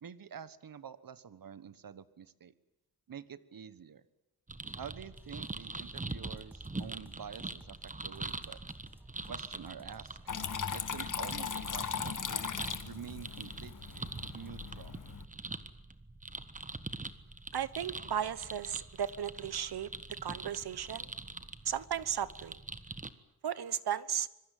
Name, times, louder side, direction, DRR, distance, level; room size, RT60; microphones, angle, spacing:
voice 1, 0.0-2.5 3.1-4.0 4.7-8.6 9.3-10.2 10.7-12.5 12.8-15.0, right 7 dB, 60° right, 15 dB, 1.3 m, -48 dB
sound 1, 4.5-23.1, right 2 dB, 20° right, 1.4 m, -44 dB
sound 2, 4.6-14.5, equal, 5° right, 2.4 m, -58 dB
Water tap faucet / Trickle dribble, 10.3-15.3, left 6 dB, 55° left, 1.8 m, -38 dB
voice 2, 17.5-19.9 20.2-21.1 21.6-22.6 23.4-24.3, right 9 dB, 80° right, 17 dB, 1.2 m, -35 dB
25.5 x 22.5 x 9.3 m, 0.88 s
wide cardioid pair, 115°, 38 cm